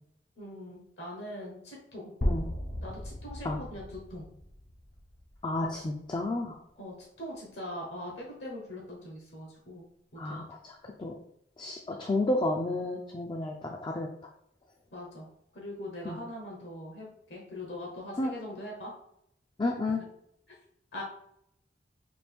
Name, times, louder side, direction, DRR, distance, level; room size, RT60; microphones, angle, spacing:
voice 1, 0.4-2.1 2.8-4.3 6.8-9.9 10.2-10.4 14.9-15.3 15.5-18.9 20.9-21.0, left 1 dB, 75° left, -2 dB, 1.1 m, -42 dB
sound 1, 2.2-6.1, equal, 50° left, 0.8 m, -36 dB
voice 2, 5.4-6.5 10.2-10.7 11.0-11.1 11.6-14.1 16.1-16.2 18.2-18.3 19.6-20.0, left 2 dB, 25° left, 1 dB, 0.3 m, -31 dB
4.3 x 2.5 x 3.4 m, 0.73 s
head